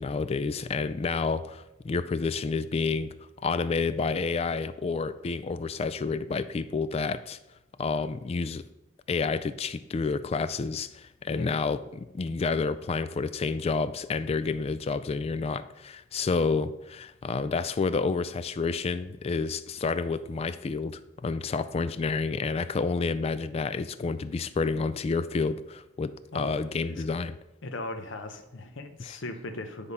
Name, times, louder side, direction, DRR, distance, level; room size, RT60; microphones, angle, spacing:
voice 1, 0.0-3.1 3.4-7.4 7.8-8.6 9.1-27.4 29.0-29.2, left 4 dB, 30° left, 13 dB, 0.3 m, -29 dB
voice 2, 26.3-27.1 27.6-29.9, left 2 dB, 65° left, 7 dB, 0.8 m, -38 dB
9.7 x 3.5 x 5.4 m, 0.92 s
head